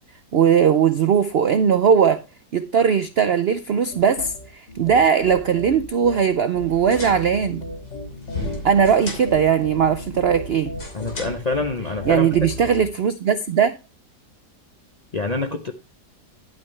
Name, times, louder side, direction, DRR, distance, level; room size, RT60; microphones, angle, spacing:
voice 1, 0.3-2.2 2.5-7.6 8.6-10.7 12.1-13.7, right 7 dB, 75° right, 0.5 m, -19 dB
sound 1, 3.9-12.9, left 1 dB, 85° left, 2.6 m, -36 dB
sound 2, 6.6-12.6, left 3 dB, 65° left, 3.6 m, -37 dB
voice 2, 10.9-12.3 15.1-15.7, left 3 dB, 45° left, 0.5 m, -26 dB
11.0 x 8.6 x 3.2 m
omnidirectional pair, 1.8 m